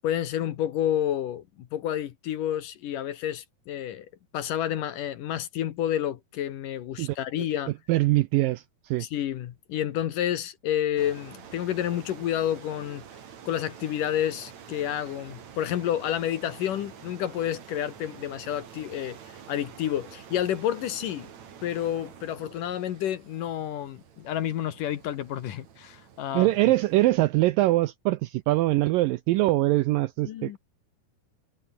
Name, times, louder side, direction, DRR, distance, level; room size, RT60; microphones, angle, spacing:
voice 1, 0.0-4.1 4.3-7.7 9.0-13.0 13.5-19.2 19.5-21.3 21.6-26.5 30.2-30.6, left 11 dB, 65° left, 2.6 m, -30 dB
voice 2, 7.9-9.1 26.3-30.6, right 18 dB, 80° right, 2.0 m, -23 dB
sound 1, 11.0-27.1, right 8 dB, 50° right, 3.3 m, -48 dB
omnidirectional pair, 4.6 m